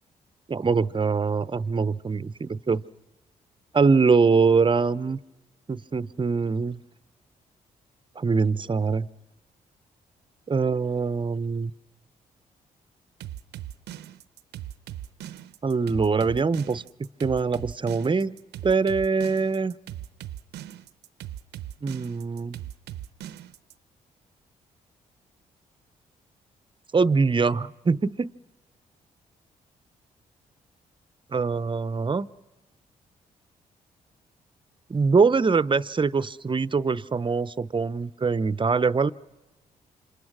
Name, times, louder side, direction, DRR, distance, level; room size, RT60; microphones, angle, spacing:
voice 1, 0.5-2.8 3.7-5.2 5.7-6.8 8.2-9.1 10.5-11.7 15.6-16.8 17.2-18.4 18.6-19.7 21.8-22.6 26.9-28.3 31.3-32.3 34.9-39.1, right 4 dB, 30° right, 18 dB, 0.7 m, -23 dB
sound 1, 13.2-23.7, right 12 dB, 75° right, 0.7 m, -39 dB
28.0 x 26.0 x 6.2 m, 1.1 s
hypercardioid pair, 50°, 17 cm